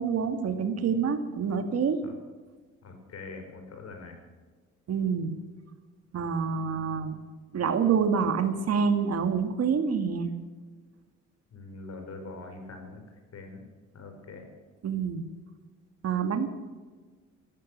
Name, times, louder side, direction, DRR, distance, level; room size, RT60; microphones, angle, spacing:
voice 1, 0.0-2.0 4.9-5.4 6.1-7.2 7.5-10.3 14.8-15.2 16.0-16.5, right 6 dB, 55° right, 8 dB, 2.0 m, -27 dB
voice 2, 2.8-4.2 11.5-13.0 13.3-13.6 13.9-14.5, left 3 dB, 55° left, 5 dB, 4.9 m, -43 dB
16.5 x 13.5 x 6.4 m, 1.4 s
cardioid pair, 90°, 30 cm